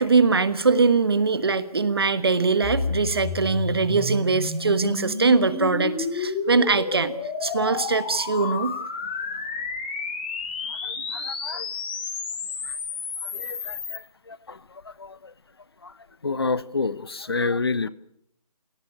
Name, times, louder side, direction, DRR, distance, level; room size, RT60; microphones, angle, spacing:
voice 1, 0.0-7.1 7.4-8.8, right 4 dB, 40° right, 14 dB, 1.3 m, -22 dB
sound 1, 2.6-14.0, left 4 dB, 15° left, 2.1 m, -31 dB
voice 2, 10.7-11.7 12.6-12.8 13.2-15.3 15.8-15.9 16.2-17.9, left 4 dB, 40° left, 19 dB, 0.8 m, -30 dB
21.5 x 18.0 x 10.0 m, 0.75 s
figure-of-eight pair, 175°, 20 cm